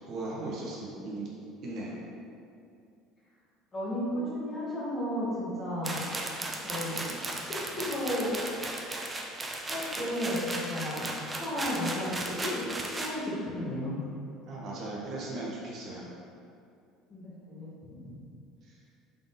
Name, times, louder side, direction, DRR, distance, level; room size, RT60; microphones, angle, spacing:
voice 1, 0.1-1.3 1.6-2.0 14.5-16.1, right 2 dB, 45° right, -4 dB, 0.6 m, -37 dB
voice 2, 3.7-6.1 6.6-7.1 7.4-8.4 9.7-11.1 11.4-12.7 12.9-14.0 17.1-18.0, left 1 dB, 20° left, -8 dB, 1.1 m, -33 dB
sound 1, 5.8-13.1, right 2 dB, 15° right, 0.3 m, -36 dB
3.8 x 3.5 x 2.5 m, 2.5 s
cardioid pair, 140°, 0 cm